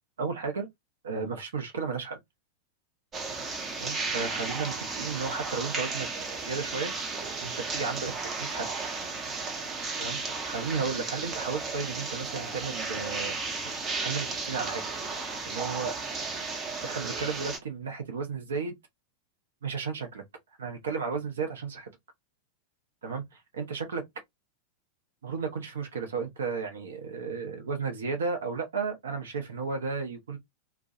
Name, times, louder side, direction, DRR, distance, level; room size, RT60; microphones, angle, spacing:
voice 1, 0.2-0.7 1.0-2.2 3.8-6.1 6.4-6.9 7.4-8.7 10.0-13.4 13.6-14.8 15.1-16.0 16.8-18.8 19.6-20.2 20.6-21.9 23.0-24.0 25.2-30.4, right 5 dB, 65° right, 0.7 m, -34 dB
sound 1, 3.1-17.6, right 4 dB, 25° right, 0.7 m, -34 dB
2.2 x 2.1 x 2.7 m
figure-of-eight pair, 90°, 0 cm